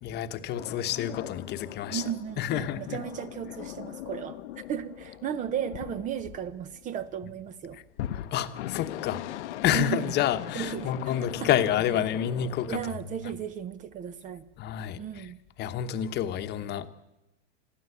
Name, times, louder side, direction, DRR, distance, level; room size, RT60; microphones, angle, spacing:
voice 1, 0.0-2.0 2.4-3.0 8.1-12.8 14.6-15.2 15.6-16.9, left 10 dB, 25° left, 9 dB, 1.1 m, -29 dB
sound 1, 0.5-6.9 7.9-12.8, left 13 dB, 65° left, 0.9 m, -40 dB
voice 2, 1.9-7.8 9.7-10.2 10.5-11.5 12.7-14.5 15.0-15.4, right 10 dB, 20° right, 15 dB, 0.6 m, -35 dB
22.0 x 15.0 x 8.2 m, 0.99 s
hypercardioid pair, 140°, 37 cm